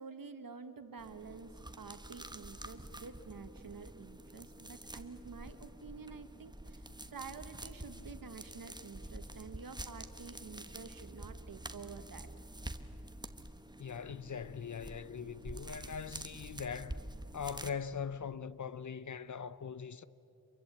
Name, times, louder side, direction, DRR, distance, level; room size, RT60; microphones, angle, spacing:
voice 1, 0.0-6.8 7.1-12.3, right 5 dB, 65° right, 1.7 m, -49 dB
sound 1, 1.0-17.7, right 1 dB, 10° right, 1.1 m, -48 dB
voice 2, 13.8-17.0 17.3-20.0, left 6 dB, 55° left, 0.8 m, -41 dB
27.5 x 23.0 x 8.3 m
wide cardioid pair, 90°, 37 cm